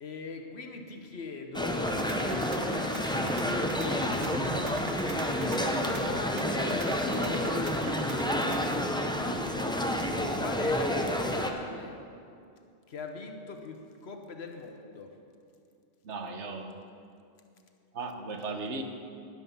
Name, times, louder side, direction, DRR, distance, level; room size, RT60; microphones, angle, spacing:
voice 1, 0.0-1.9 3.6-4.4 5.7-7.7 9.2-12.0 12.9-15.1, left 4 dB, 65° left, 4 dB, 1.3 m, -41 dB
sound 1, 1.5-11.5, left 1 dB, 5° left, 0.6 m, -29 dB
sound 2, 1.9-8.7, right 3 dB, 60° right, 1.5 m, -42 dB
voice 2, 16.0-16.7 17.9-18.8, right 3 dB, 75° right, 5 dB, 1.3 m, -36 dB
13.0 x 10.5 x 5.5 m, 2.4 s
omnidirectional pair, 1.2 m